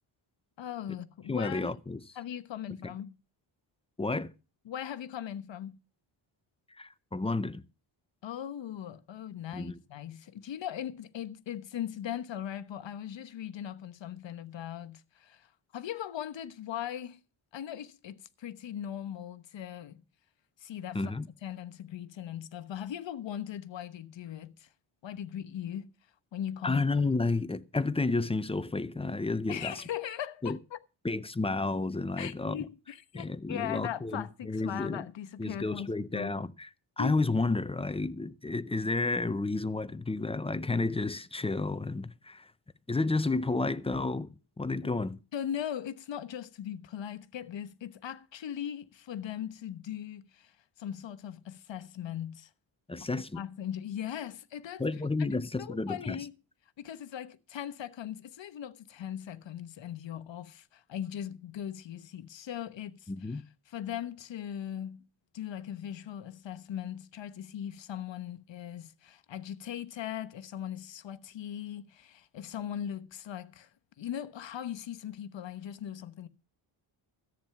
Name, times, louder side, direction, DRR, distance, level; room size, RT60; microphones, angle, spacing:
voice 1, 0.6-1.7 2.2-3.1 4.6-5.8 8.2-17.2 17.5-20.0 20.6-21.1 21.4-24.7 25.0-25.9 26.3-26.8 29.5-30.8 32.2-36.3 37.0-37.1 44.8-44.9 45.3-52.5 53.3-54.8 55.3-56.3 56.8-65.1 65.3-73.7 74.0-76.3, left 10 dB, 65° left, 1.2 m, -39 dB
voice 2, 1.3-2.0 2.8-2.9 4.0-4.3 6.8-7.6 9.5-9.8 20.9-21.3 26.6-29.8 30.4-30.6 31.0-32.6 33.1-35.1 35.4-36.7 37.0-42.5 42.9-45.2 52.9-53.4 54.8-56.2 63.1-63.4, left 3 dB, 10° left, 0.5 m, -31 dB
14.0 x 8.9 x 5.8 m
wide cardioid pair, 135°, 49 cm